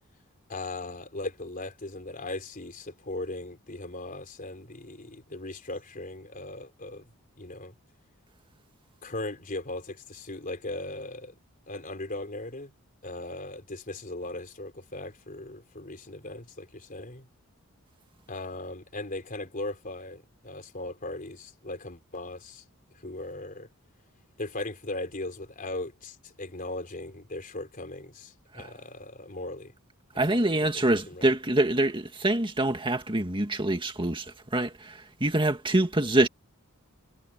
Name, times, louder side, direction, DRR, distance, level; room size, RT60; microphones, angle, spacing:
voice 1, 0.5-7.1 7.3-7.7 9.0-11.3 11.7-12.7 13.0-17.3 18.3-22.6 22.9-23.7 24.4-29.7 30.1-30.4 31.1-31.3, left 2 dB, 40° left, 4.1 m, -38 dB
voice 2, 30.2-36.3, right 1 dB, 25° right, 2.2 m, -25 dB
head